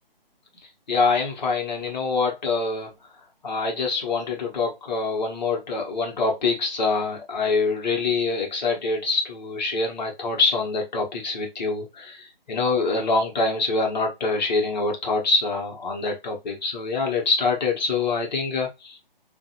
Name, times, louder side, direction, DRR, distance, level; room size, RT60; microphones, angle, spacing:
voice 1, 0.9-2.9 3.4-19.0, left 3 dB, 50° left, 1 dB, 1.1 m, -25 dB
2.6 x 2.5 x 2.8 m, 0.23 s
figure-of-eight pair, 150°, 29 cm